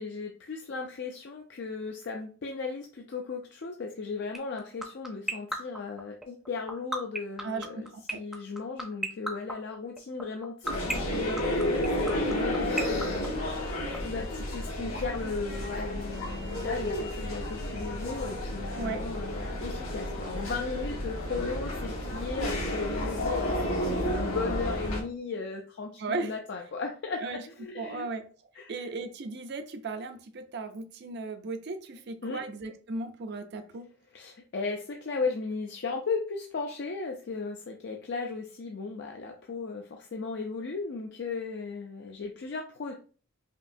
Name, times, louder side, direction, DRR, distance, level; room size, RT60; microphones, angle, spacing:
voice 1, 0.0-7.9 8.1-28.1 28.6-28.7 32.2-32.4 34.1-42.9, left 4 dB, 55° left, 2 dB, 0.4 m, -36 dB
sound 1, 4.3-14.0, right 1 dB, ahead, 0.5 m, -31 dB
voice 2, 7.4-8.2 18.8-19.0 26.0-26.3 27.2-27.4 27.7-28.2 28.7-33.9, right 3 dB, 50° right, 7 dB, 0.5 m, -36 dB
sound 2, 10.6-25.0, left 1 dB, 90° left, 1.8 m, -31 dB
5.1 x 2.7 x 2.6 m, 0.40 s
head